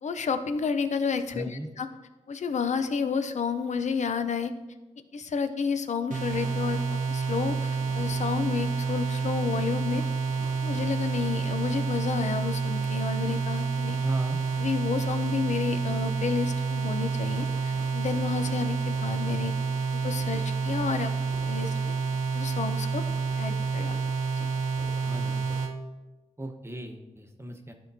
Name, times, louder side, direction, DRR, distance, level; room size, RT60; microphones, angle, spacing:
voice 1, 0.0-1.9 2.3-4.5 5.1-10.0 10.6-14.0 14.6-19.5 19.9-21.1 21.5-21.7 22.3-23.0 23.4-24.0 24.3-24.5, left 5 dB, 65° left, 9 dB, 0.6 m, -30 dB
voice 2, 1.3-1.7 14.0-14.4 25.0-25.5 26.4-27.7, right 1 dB, 20° right, 4 dB, 1.0 m, -37 dB
sound 1, 6.1-25.7, right 5 dB, 85° right, 1.0 m, -29 dB
11.5 x 4.5 x 2.7 m, 1.1 s
cardioid pair, 55°, 13 cm